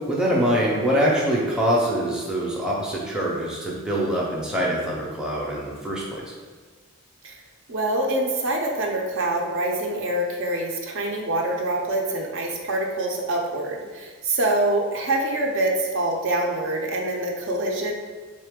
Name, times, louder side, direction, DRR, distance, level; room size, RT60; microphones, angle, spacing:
voice 1, 0.0-6.2, equal, 5° right, -5 dB, 0.5 m, -24 dB
voice 2, 7.7-17.9, right 1 dB, 60° right, 1 dB, 0.6 m, -25 dB
3.7 x 3.3 x 3.6 m, 1.4 s
head